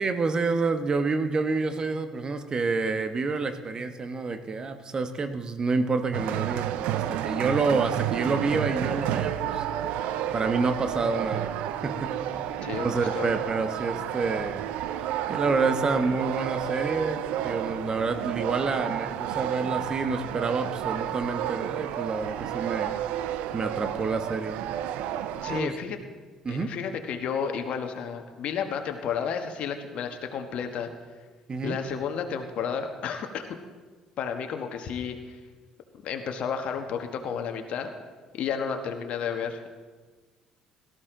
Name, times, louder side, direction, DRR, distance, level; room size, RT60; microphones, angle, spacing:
voice 1, 0.0-9.6 10.3-11.5 11.8-12.2 12.8-14.6 15.3-23.0 23.5-24.7 25.5-25.8 26.4-26.7 31.5-31.8, right 4 dB, 35° right, 8 dB, 1.3 m, -28 dB
sound 1, 6.1-25.6, right 11 dB, 70° right, 0.6 m, -31 dB
voice 2, 12.6-13.3 25.4-26.0 26.5-30.9 31.6-33.4 34.2-35.3 36.0-37.9 38.3-39.7, left 7 dB, 60° left, 5 dB, 1.4 m, -32 dB
17.5 x 13.0 x 3.9 m, 1.4 s
hypercardioid pair, 55°, 2 cm